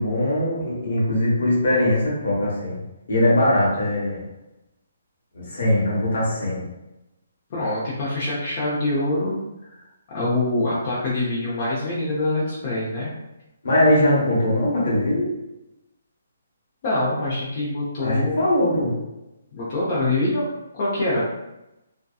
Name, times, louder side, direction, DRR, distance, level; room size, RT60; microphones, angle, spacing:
voice 1, 0.0-2.8 3.1-4.2 5.3-6.7 13.6-15.3 18.0-19.0, left 1 dB, 70° left, -5 dB, 1.1 m, -21 dB
voice 2, 7.5-9.8 10.1-13.1 16.8-18.4 19.5-21.3, left 2 dB, 40° left, -8 dB, 0.7 m, -25 dB
2.7 x 2.2 x 2.3 m, 0.95 s
hypercardioid pair, 155°, 0 cm